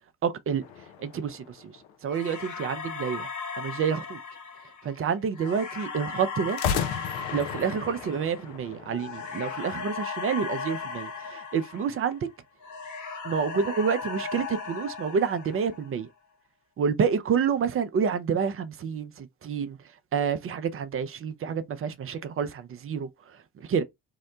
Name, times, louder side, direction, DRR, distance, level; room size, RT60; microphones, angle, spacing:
voice 1, 0.2-0.6 1.0-1.7 2.0-3.3 3.6-4.2 4.8-6.6 7.3-12.2 13.2-16.1 16.8-19.8 20.1-23.8, right 6 dB, 35° right, 0.5 m, -28 dB
sound 1, 0.6-2.4 6.5-9.6, left 8 dB, 75° left, 0.6 m, -34 dB
sound 2, 2.1-12.3 12.6-16.0, left 5 dB, 45° left, 1.0 m, -37 dB
2.8 x 2.1 x 3.7 m
hypercardioid pair, 50°, 41 cm